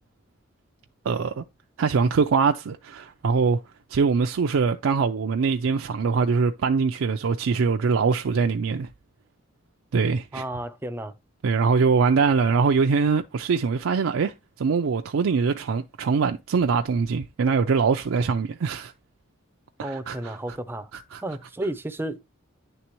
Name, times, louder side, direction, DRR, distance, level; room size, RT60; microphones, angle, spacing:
voice 1, 1.0-1.4 1.8-3.6 3.9-8.9 9.9-10.4 11.4-18.9 19.8-20.4 21.1-21.2, right 5 dB, 85° right, 0.4 m, -23 dB
voice 2, 10.3-11.1 19.8-20.9 21.2-22.2, right 1 dB, 10° right, 0.5 m, -32 dB
9.9 x 3.4 x 2.9 m
head